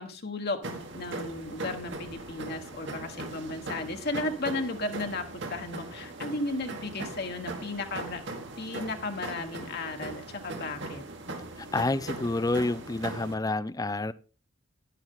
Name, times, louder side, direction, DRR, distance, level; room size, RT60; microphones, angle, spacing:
voice 1, 0.0-8.2 8.6-11.0, left 2 dB, 50° left, 4 dB, 1.5 m, -34 dB
sound 1, 0.6-13.3, right 2 dB, 60° right, 2.2 m, -39 dB
voice 2, 11.7-14.1, left 2 dB, 20° left, 17 dB, 0.5 m, -28 dB
11.5 x 11.0 x 3.7 m, 0.34 s
head